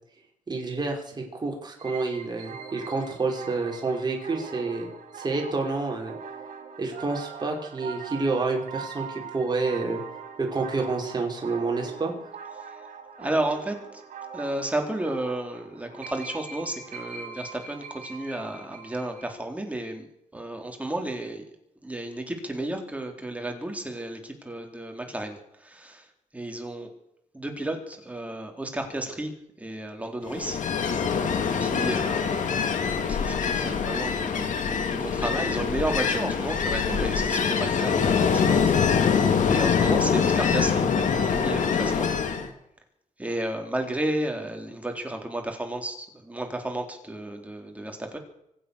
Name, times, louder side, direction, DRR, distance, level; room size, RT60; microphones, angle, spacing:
voice 1, 0.5-4.9 5.1-6.1 6.8-10.0 10.4-12.1, right 3 dB, 30° right, 0 dB, 5.2 m, -29 dB
sound 1, 1.8-19.3, right 6 dB, 90° right, 2.8 m, -42 dB
voice 2, 12.6-12.9 13.2-14.0 14.3-20.1 20.3-21.4 21.8-26.9 27.3-30.6 31.6-38.7 39.5-42.1 43.2-48.2, right 1 dB, 10° right, 3 dB, 3.8 m, -32 dB
Ocean, 30.3-42.5, left 6 dB, 70° left, 2.4 m, -24 dB
25.0 x 8.7 x 6.5 m, 0.80 s
cardioid pair, 95°, 13 cm